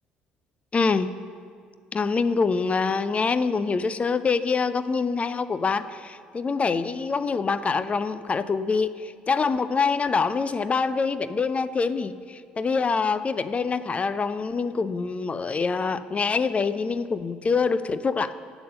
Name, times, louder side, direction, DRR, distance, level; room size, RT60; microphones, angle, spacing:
voice 1, 0.7-1.1 1.9-18.3, left 4 dB, 30° left, 14 dB, 0.5 m, -25 dB
12.0 x 7.0 x 6.5 m, 2.1 s
figure-of-eight pair, 50°, 4 cm